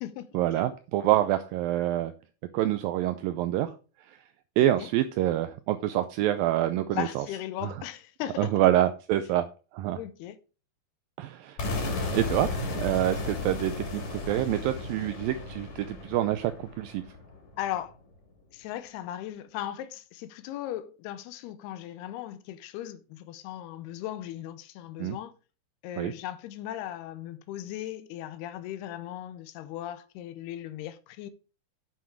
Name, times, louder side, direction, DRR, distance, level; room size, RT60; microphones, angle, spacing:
voice 1, 0.3-2.1 2.5-3.7 4.1-4.2 4.6-7.3 7.6-7.8 8.4-9.5 9.7-10.0 11.2-11.6 12.1-17.0 25.0-25.2 26.0-26.1, right 13 dB, 85° right, 2.1 m, -26 dB
voice 2, 4.6-4.9 6.9-8.5 10.0-10.4 17.6-17.9 18.5-25.3 25.8-31.3, left 12 dB, 90° left, 2.7 m, -37 dB
sound 1, 11.6-17.5, left 2 dB, 50° left, 3.5 m, -34 dB
9.5 x 5.9 x 4.6 m
omnidirectional pair, 4.6 m